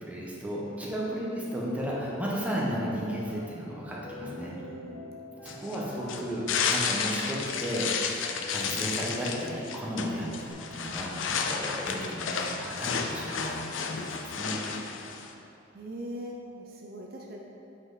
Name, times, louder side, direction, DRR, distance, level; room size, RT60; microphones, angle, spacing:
voice 1, 0.0-4.6 5.4-14.7, equal, 10° right, -5 dB, 1.0 m, -34 dB
Piano, 1.8-10.5, left 1 dB, 15° left, 1.3 m, -45 dB
voice 2, 4.2-5.1 5.9-6.3 10.1-10.5 10.8-11.3 15.7-17.4, right 1 dB, 50° right, -1 dB, 0.6 m, -43 dB
sound 1, 5.5-15.3, left 6 dB, 80° left, 0.5 m, -32 dB
7.4 x 5.1 x 4.0 m, 2.8 s
head